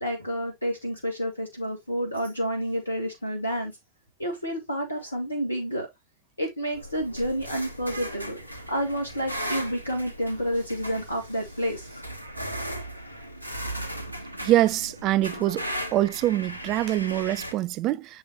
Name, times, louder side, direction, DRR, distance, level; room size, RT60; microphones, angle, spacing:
voice 1, 0.0-3.8 4.2-5.9 6.4-12.0, equal, 85° left, 1.6 m, -29 dB
sound 1, 6.7-17.5, equal, 85° right, 1.1 m, -37 dB
voice 2, 14.4-15.6 15.9-18.2, right 14 dB, 40° right, 0.4 m, -24 dB
7.0 x 5.5 x 2.8 m
figure-of-eight pair, 90°, 0 cm